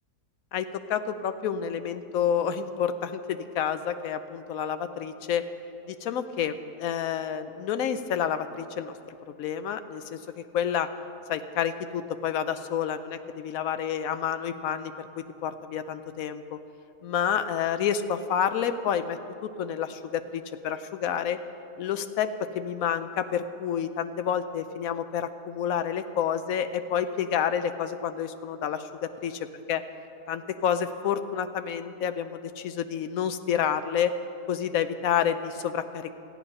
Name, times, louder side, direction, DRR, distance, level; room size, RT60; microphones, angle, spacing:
voice 1, 0.5-5.4 5.9-8.9 9.4-10.9 11.3-16.6 17.0-21.4 21.8-22.3 22.5-29.4 29.7-29.8 30.3-34.1 34.5-36.2, left 8 dB, 70° left, 10 dB, 1.0 m, -29 dB
14.0 x 9.8 x 5.3 m, 2.7 s
omnidirectional pair, 1.7 m